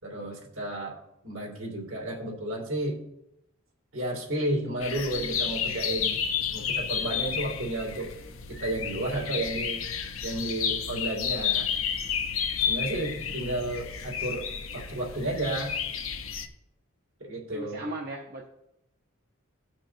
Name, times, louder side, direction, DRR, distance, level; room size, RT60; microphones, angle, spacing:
voice 1, 0.0-3.1 3.9-6.2 6.5-8.1 8.5-9.8 10.2-11.7 12.6-14.5 14.7-15.8 17.2-17.8, right 1 dB, 75° right, -1 dB, 2.8 m, -32 dB
sound 1, 4.8-16.5, left 7 dB, 75° left, 0.9 m, -31 dB
voice 2, 17.5-18.5, right 2 dB, 45° right, -1 dB, 1.0 m, -36 dB
18.0 x 6.0 x 2.9 m, 0.85 s
head